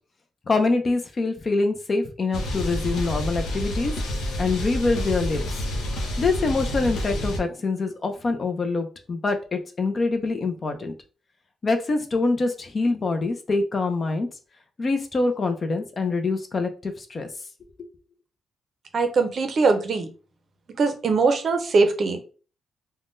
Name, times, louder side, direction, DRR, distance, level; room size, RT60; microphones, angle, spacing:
voice 1, 0.5-3.9 4.4-5.4 6.2-10.9 11.6-14.3 14.8-17.3, left 3 dB, 35° left, 6 dB, 0.5 m, -25 dB
sound 1, 2.3-7.4, equal, 90° left, 0.6 m, -28 dB
voice 2, 18.9-20.1 20.8-22.2, right 4 dB, 50° right, 7 dB, 0.5 m, -21 dB
3.5 x 2.1 x 2.5 m, 0.37 s
cardioid pair, 120°, 0 cm